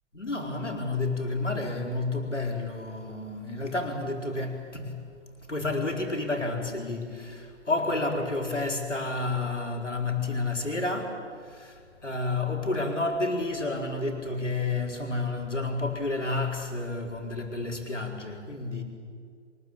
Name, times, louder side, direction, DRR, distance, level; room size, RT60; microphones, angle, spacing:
voice 1, 0.1-5.0 5.5-18.8, left 2 dB, 85° left, 1 dB, 4.5 m, -30 dB
24.0 x 21.0 x 8.9 m, 2.2 s
figure-of-eight pair, 125°, 35 cm